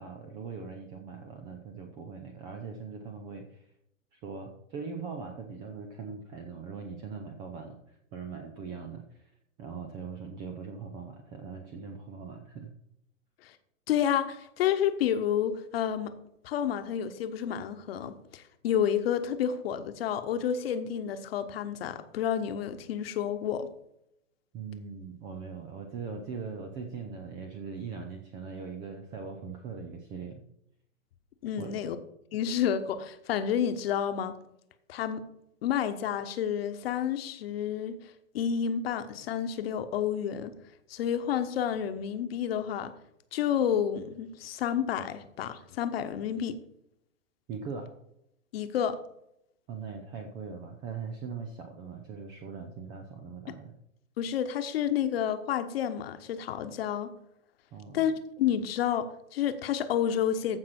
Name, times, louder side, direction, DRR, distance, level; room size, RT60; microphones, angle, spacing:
voice 1, 0.0-3.7 4.1-9.3 9.6-12.7 24.5-30.4 31.6-31.8 47.5-47.9 49.7-53.7 57.7-58.0, right 5 dB, 10° right, 0.4 m, -41 dB
voice 2, 13.9-16.1 16.4-23.7 31.4-32.0 32.3-34.4 34.9-35.2 35.6-38.0 38.3-40.5 40.9-42.9 43.3-46.6 48.5-49.0 54.2-57.1 57.9-60.6, left 9 dB, 45° left, 1.2 m, -30 dB
14.5 x 5.9 x 4.4 m
figure-of-eight pair, 110°, 41 cm